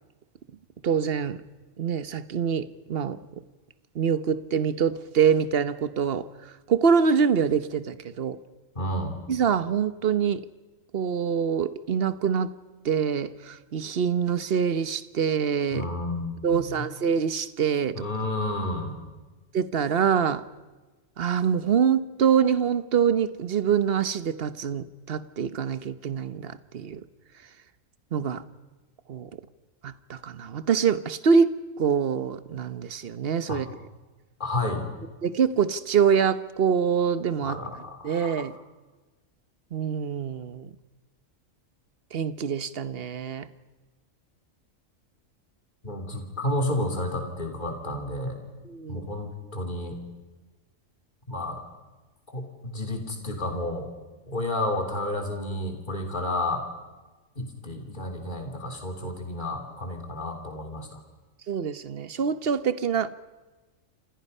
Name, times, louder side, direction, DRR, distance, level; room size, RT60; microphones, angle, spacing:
voice 1, 0.8-1.4 1.8-3.2 3.9-8.4 9.3-10.4 10.9-12.5 12.8-15.9 16.4-18.0 19.5-20.4 21.2-27.0 28.1-28.4 29.1-29.3 29.8-33.6 35.2-37.6 38.0-38.5 39.7-40.7 42.1-43.5 48.6-49.1 61.5-63.1, right 7 dB, 50° right, 14 dB, 1.1 m, -25 dB
voice 2, 8.7-9.2 15.7-16.8 17.9-19.0 33.5-33.6 34.4-34.8 37.4-38.4 45.8-48.4 48.9-50.0 51.3-51.6 52.3-53.9 54.3-56.6 57.4-61.0, left 1 dB, 35° left, 3 dB, 3.4 m, -31 dB
28.5 x 27.0 x 5.5 m, 1.2 s
omnidirectional pair, 1.3 m